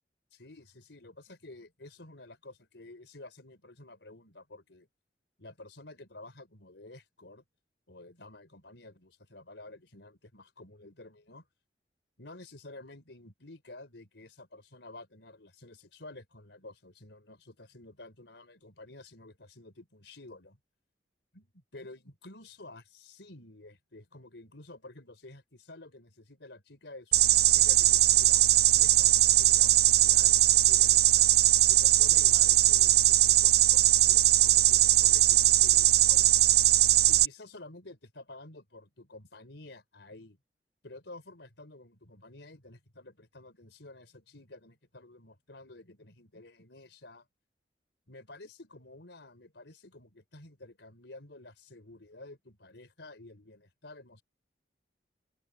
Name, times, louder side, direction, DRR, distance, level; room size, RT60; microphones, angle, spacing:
voice 1, 0.3-4.9 5.4-7.4 7.9-11.5 12.2-20.6 21.3-31.3 31.7-36.3 37.1-40.4 40.8-47.3 48.1-54.2, left 2 dB, 75° left, 4.2 m, -51 dB
sound 1, 27.1-37.3, right 13 dB, 60° right, 0.6 m, -21 dB
open air
head